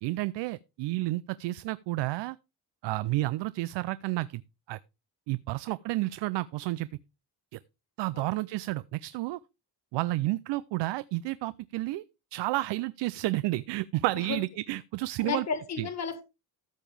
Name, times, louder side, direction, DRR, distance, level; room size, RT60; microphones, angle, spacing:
voice 1, 0.0-2.4 2.8-4.4 4.7-4.8 5.3-6.9 7.5-7.6 8.0-9.4 9.9-12.0 12.3-15.5 15.8-15.9, right 18 dB, 85° right, 0.5 m, -31 dB
voice 2, 15.2-16.2, left 6 dB, 40° left, 1.7 m, -33 dB
13.5 x 7.2 x 3.2 m
cardioid pair, 135°, 41 cm